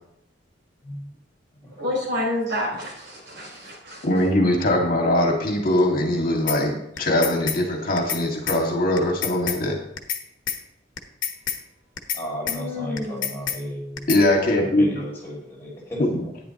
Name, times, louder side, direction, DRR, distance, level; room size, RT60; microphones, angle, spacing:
voice 1, 1.8-4.1 12.5-13.4, left 1 dB, 70° right, -3 dB, 4.6 m, -29 dB
voice 2, 4.0-9.8 14.1-15.0 16.0-16.2, left 1 dB, 50° left, 1 dB, 2.0 m, -21 dB
sound 1, 6.5-6.6 7.0-7.6 8.0-8.2 8.5-8.6 9.0-9.6 10.0-10.2 10.5-10.6 11.0-11.6 12.0-12.2 12.5-12.6 13.0-13.6 14.0-14.2, left 9 dB, 85° left, 1.1 m, -27 dB
voice 3, 12.1-14.1 14.6-16.3, equal, 15° left, -5 dB, 4.6 m, -34 dB
11.0 x 10.0 x 3.0 m, 0.77 s
head